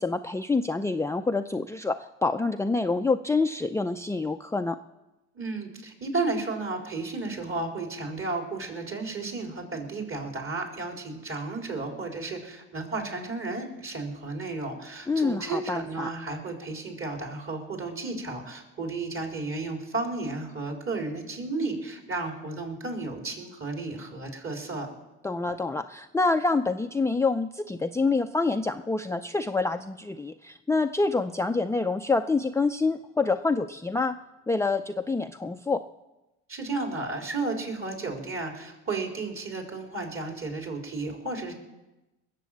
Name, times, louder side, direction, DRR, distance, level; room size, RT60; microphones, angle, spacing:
voice 1, 0.0-4.8 15.1-16.1 25.2-34.2 34.5-35.8, left 3 dB, 10° left, 6 dB, 0.5 m, -27 dB
voice 2, 5.3-24.9 36.5-41.5, right 3 dB, 40° right, 1 dB, 4.2 m, -33 dB
20.0 x 7.7 x 7.2 m, 1.0 s
supercardioid pair, 75°, 33 cm